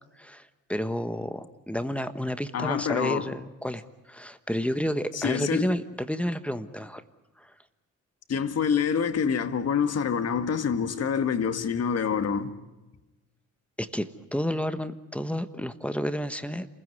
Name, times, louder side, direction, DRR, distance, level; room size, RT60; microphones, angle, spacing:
voice 1, 0.0-7.0 7.4-7.5 13.8-16.7, equal, 5° left, 1.2 m, -31 dB
voice 2, 2.5-3.3 5.1-5.7 8.3-12.5, left 7 dB, 55° left, 1.8 m, -26 dB
27.5 x 16.0 x 9.5 m
cardioid pair, 90°, 30 cm